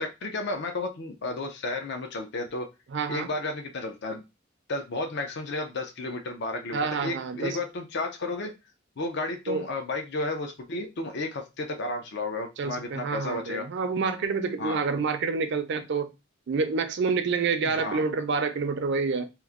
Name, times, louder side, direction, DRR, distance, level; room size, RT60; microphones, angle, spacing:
voice 1, 0.0-2.7 3.1-4.2 4.7-8.5 9.0-13.7 14.6-14.8 17.6-18.0, left 2 dB, 60° left, 0.6 m, -32 dB
voice 2, 2.9-3.3 6.7-7.6 9.5-9.6 12.6-16.1 16.5-19.3, right 4 dB, 60° right, 0.5 m, -28 dB
3.0 x 2.1 x 3.5 m
head